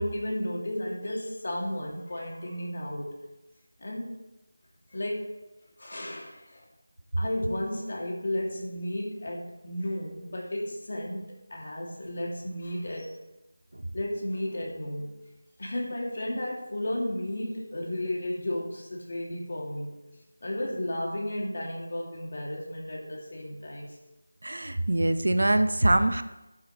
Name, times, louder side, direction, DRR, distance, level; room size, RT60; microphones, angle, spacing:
voice 1, 0.0-3.1 3.8-4.1 4.9-5.3 5.8-6.7 7.2-13.1 13.9-15.1 15.6-19.9 20.4-24.0, left 1 dB, 45° left, -1 dB, 2.4 m, -33 dB
voice 2, 24.4-26.2, right 1 dB, 80° right, 10 dB, 0.8 m, -23 dB
14.5 x 7.5 x 3.1 m, 0.99 s
figure-of-eight pair, 175°, 0 cm